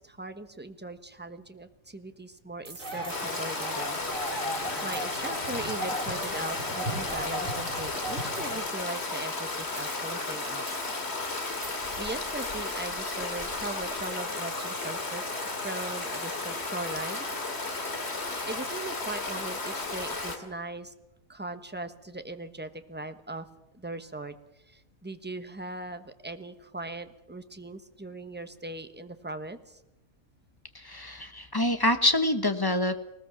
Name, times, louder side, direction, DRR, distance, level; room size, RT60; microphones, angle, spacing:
voice 1, 0.0-4.0 4.5-10.6 12.0-15.2 15.6-17.3 18.4-20.9 21.3-23.5 23.7-29.8, right 2 dB, 10° right, 9 dB, 1.1 m, -39 dB
sound 1, 2.6-3.2 3.6-3.9 4.9-5.1 6.2-6.5 7.2-7.3 8.3-8.7 9.8-10.2 10.7-11.1 11.6-12.0 12.4-12.6 13.1-13.2 13.8-14.0 14.6-14.7, right 3 dB, 65° right, 2.9 m, -46 dB
sound 2, 2.8-8.6, equal, 35° right, 6.2 m, -36 dB
Stream, 3.1-20.4, left 3 dB, 50° left, 2.6 m, -34 dB
voice 2, 30.7-33.0, left 1 dB, 15° left, 9 dB, 1.2 m, -26 dB
20.0 x 19.5 x 7.2 m, 0.91 s
omnidirectional pair, 1.5 m